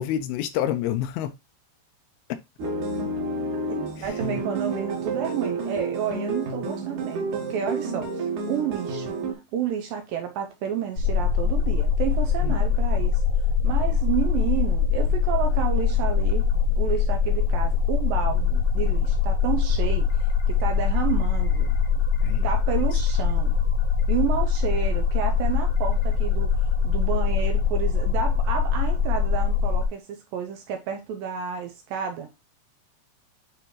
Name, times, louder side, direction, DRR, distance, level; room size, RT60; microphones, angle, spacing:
voice 1, 0.0-1.3 4.0-4.1 12.4-12.6 22.2-22.5 22.9-23.0, left 11 dB, 80° left, 2.5 m, -28 dB
sound 1, 2.6-9.3, right 3 dB, 55° right, 2.7 m, -30 dB
voice 2, 4.0-9.2 9.5-13.2 13.6-16.5 16.8-21.7 22.4-23.6 24.1-32.3, right 8 dB, 80° right, 2.1 m, -30 dB
sound 2, 11.0-29.9, left 6 dB, 55° left, 1.8 m, -23 dB
9.7 x 3.4 x 3.0 m
omnidirectional pair, 4.6 m